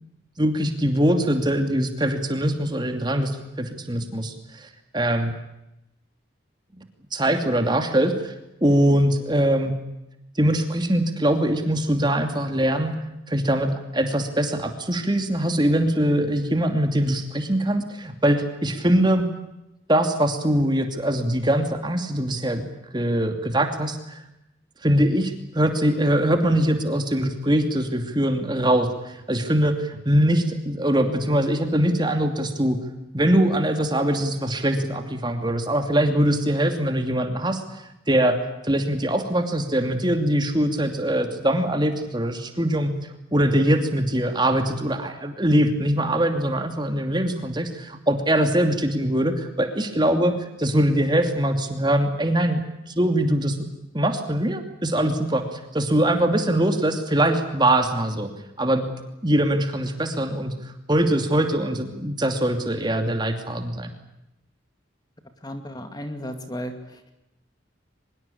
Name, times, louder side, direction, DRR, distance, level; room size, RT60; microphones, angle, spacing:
voice 1, 0.4-3.3 3.6-5.3 6.8-6.9 7.1-8.3 8.6-9.7 10.4-12.9 13.3-19.3 19.9-22.7 22.9-24.2 24.8-32.8 33.1-38.4 38.6-42.9 43.3-50.3 50.6-53.6 53.9-58.3 58.6-58.9 59.2-60.5 60.9-63.9, right 1 dB, 20° right, 6 dB, 2.7 m, -22 dB
voice 2, 65.4-67.1, equal, 20° left, 7 dB, 2.3 m, -34 dB
24.0 x 22.5 x 8.5 m, 0.87 s
head